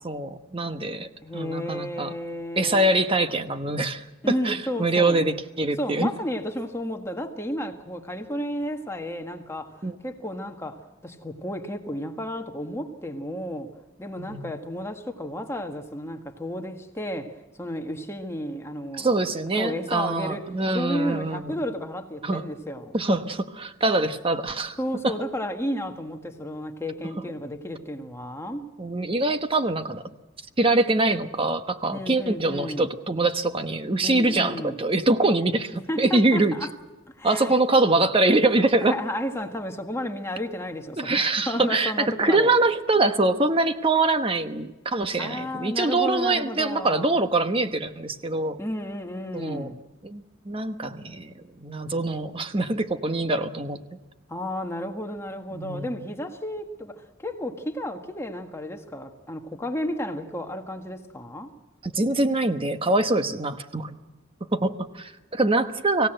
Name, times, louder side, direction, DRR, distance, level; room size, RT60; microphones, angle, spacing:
voice 1, 0.0-2.1 2.6-6.1 9.8-9.9 14.2-14.5 19.0-21.5 22.2-22.4 22.9-24.8 25.0-25.1 28.8-30.0 30.6-36.6 37.2-38.9 41.0-41.9 42.2-48.6 49.3-49.7 50.0-53.8 55.5-55.9 61.8-64.0 64.5-66.1, right 2 dB, 30° right, 9 dB, 1.1 m, -24 dB
voice 2, 1.2-2.9 4.2-5.2 5.8-13.7 14.0-17.3 17.6-19.1 19.6-20.4 20.7-23.0 24.8-28.7 31.9-32.9 34.0-34.7 35.9-36.7 37.2-37.6 38.8-42.5 45.2-47.1 48.6-49.8 54.3-56.9 57.2-61.5, left 1 dB, 15° left, 4 dB, 1.6 m, -32 dB
25.0 x 16.5 x 7.9 m, 1.1 s
head